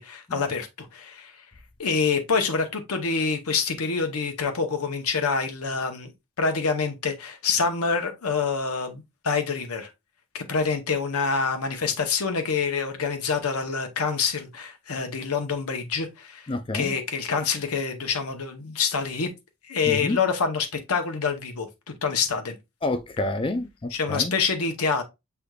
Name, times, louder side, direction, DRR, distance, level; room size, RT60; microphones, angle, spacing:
voice 1, 0.0-1.3 1.8-6.1 6.4-9.9 10.3-16.5 16.7-19.3 19.7-22.6 23.9-25.0, left 5 dB, 85° left, 0.9 m, -26 dB
voice 2, 16.5-16.9 19.9-20.2 22.8-24.3, left 2 dB, 25° left, 0.3 m, -28 dB
6.2 x 3.4 x 2.3 m
head